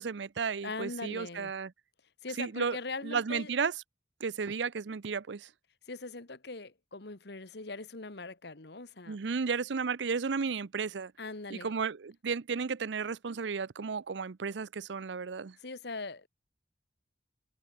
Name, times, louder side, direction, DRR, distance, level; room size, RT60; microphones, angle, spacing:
voice 1, 0.0-1.7 2.4-2.8 3.0-3.7 4.2-5.5 9.1-11.1 11.5-15.6, right 5 dB, 75° right, 0.6 m, -33 dB
voice 2, 0.6-1.5 2.2-3.5 5.9-9.2 11.2-11.7 15.6-16.3, left 3 dB, 65° left, 1.7 m, -41 dB
head